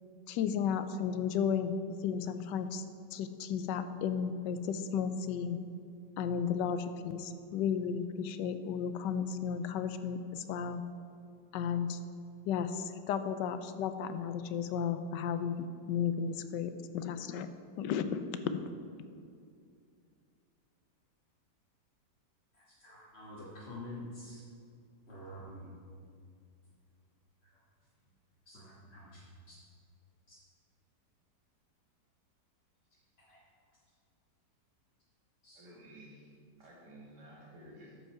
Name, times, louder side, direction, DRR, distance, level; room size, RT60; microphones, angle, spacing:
voice 1, 0.3-2.8 3.1-5.6 6.2-10.8 11.5-12.0 12.5-17.5 17.8-18.2 18.5-18.6, left 7 dB, 85° left, 10 dB, 1.2 m, -34 dB
voice 2, 22.5-24.4 25.1-25.7 27.4-27.6 28.4-29.6 30.3-30.4 33.2-33.4 35.4-35.7, left 1 dB, 40° left, -8 dB, 1.6 m, -48 dB
voice 3, 35.5-36.3 36.6-38.0, right 1 dB, 70° right, -3 dB, 2.5 m, -53 dB
13.0 x 5.5 x 4.7 m, 2.4 s
omnidirectional pair, 1.9 m